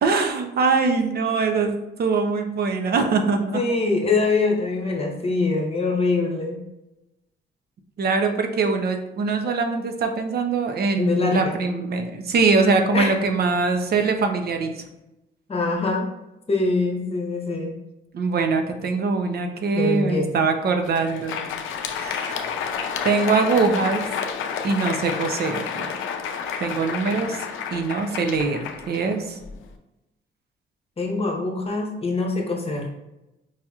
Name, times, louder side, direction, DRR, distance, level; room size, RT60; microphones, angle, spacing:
voice 1, 0.0-3.6 8.0-14.8 18.1-21.4 21.9-22.5 23.0-24.0 24.6-25.9 26.6-27.5 27.7-29.4, right 4 dB, 50° right, 5 dB, 0.6 m, -23 dB
voice 2, 3.5-6.6 11.0-11.6 12.9-13.2 15.5-16.1 16.5-17.8 19.7-20.3 31.0-32.9, left 3 dB, 30° left, 1 dB, 0.9 m, -23 dB
Crowd, 20.7-29.7, left 7 dB, 80° left, 0.5 m, -30 dB
4.8 x 2.8 x 2.4 m, 0.93 s
cardioid pair, 90°, 20 cm